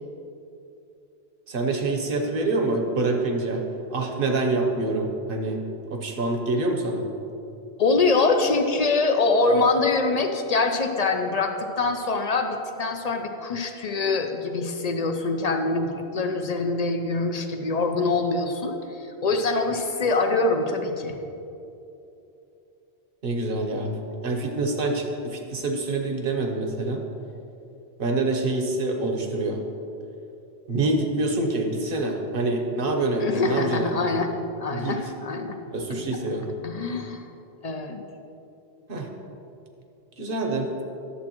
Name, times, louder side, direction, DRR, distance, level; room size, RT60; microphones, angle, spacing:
voice 1, 1.5-3.6 3.9-5.6 5.9-7.0 23.2-24.0 24.2-27.0 28.0-29.6 30.7-34.1 34.7-35.0 35.6-36.5 38.9-39.1 40.2-40.7, right 2 dB, 60° right, 3 dB, 1.0 m, -26 dB
voice 2, 7.8-21.2 33.2-34.3 34.6-35.6 36.6-37.2 37.6-38.0, left 3 dB, 50° left, 5 dB, 0.6 m, -24 dB
11.0 x 7.3 x 3.0 m, 2.8 s
omnidirectional pair, 1.1 m